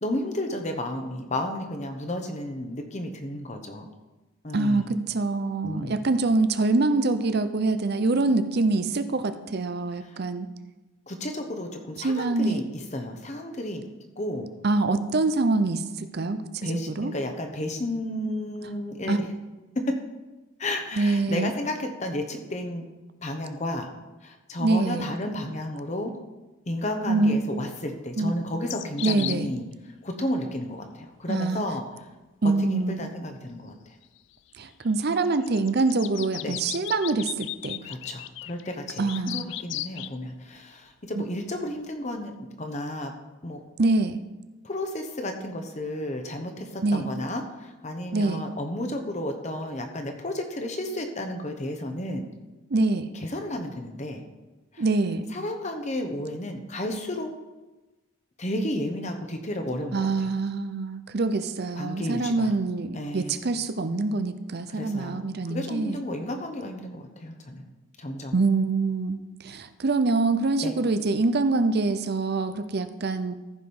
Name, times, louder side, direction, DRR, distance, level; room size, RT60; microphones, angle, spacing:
voice 1, 0.0-3.9 4.4-4.9 5.6-6.0 10.0-10.2 11.1-14.5 16.6-19.3 19.7-20.0 20.6-22.9 23.2-23.9 24.2-26.2 26.7-31.8 32.4-33.7 36.4-36.6 37.8-43.1 43.4-43.6 44.6-52.3 53.1-54.2 54.7-54.8 55.3-57.3 58.4-60.3 61.8-62.5 62.9-63.4 64.7-67.6 68.0-68.3 70.6-70.7, left 1 dB, 35° left, 5 dB, 1.0 m, -32 dB
voice 2, 4.5-10.5 12.0-12.6 14.6-17.1 19.1-19.2 21.0-21.5 24.6-25.1 27.1-27.4 28.2-28.3 29.0-29.5 31.3-31.6 32.4-33.1 34.6-37.8 39.0-39.5 41.1-41.2 43.8-44.2 46.8-47.1 48.1-48.4 52.7-53.1 54.8-55.3 59.9-66.0 68.3-73.3, right 3 dB, 50° right, 11 dB, 0.6 m, -25 dB
sound 1, 28.7-29.4 34.2-34.3 35.1-40.1, left 15 dB, 60° left, 0.3 m, -36 dB
14.5 x 4.9 x 5.5 m, 1.1 s
head